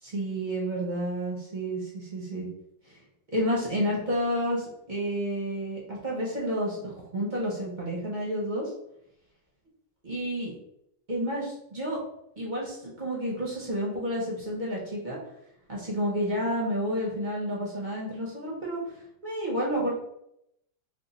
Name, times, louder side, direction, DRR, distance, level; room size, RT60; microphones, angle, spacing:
voice 1, 0.0-2.5 3.3-8.7 10.0-10.5 11.1-12.0 12.4-15.2 15.7-18.8 19.2-19.9, equal, 45° right, -4 dB, 0.6 m, -30 dB
3.6 x 2.1 x 3.9 m, 0.78 s
omnidirectional pair, 2.1 m